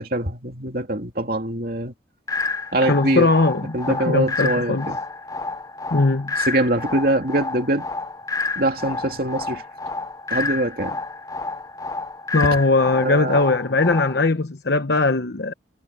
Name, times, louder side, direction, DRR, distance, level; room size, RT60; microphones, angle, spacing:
voice 1, 0.0-1.9 2.7-3.3 3.7-5.0 6.5-7.9 8.6-9.6 10.3-11.0 13.0-13.5, right 1 dB, 50° right, 2.8 m, -23 dB
sound 1, 2.3-14.3, left 3 dB, 20° left, 0.6 m, -30 dB
voice 2, 2.9-4.9 5.9-6.3 12.3-15.5, left 3 dB, 65° left, 0.9 m, -20 dB
head